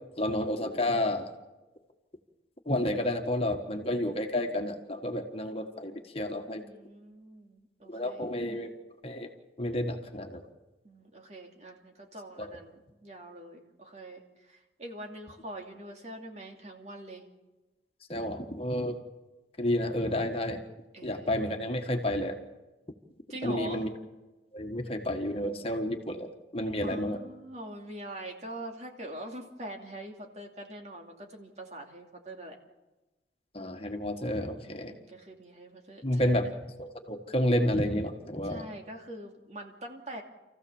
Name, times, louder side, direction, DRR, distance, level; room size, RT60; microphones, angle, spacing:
voice 1, 0.2-1.3 2.7-6.6 7.9-8.7 9.0-9.3 9.6-10.4 12.4-12.6 18.1-19.0 19.6-20.6 21.0-22.4 23.4-23.9 24.5-27.2 33.5-34.9 36.0-36.5 36.8-38.6, left 1 dB, 35° left, 4 dB, 1.7 m, -30 dB
voice 2, 6.6-8.3 10.8-17.3 20.9-21.4 23.3-23.9 26.8-32.6 34.6-36.4 38.4-40.2, right 1 dB, 40° right, 2 dB, 2.6 m, -44 dB
27.5 x 15.0 x 7.2 m, 1.1 s
head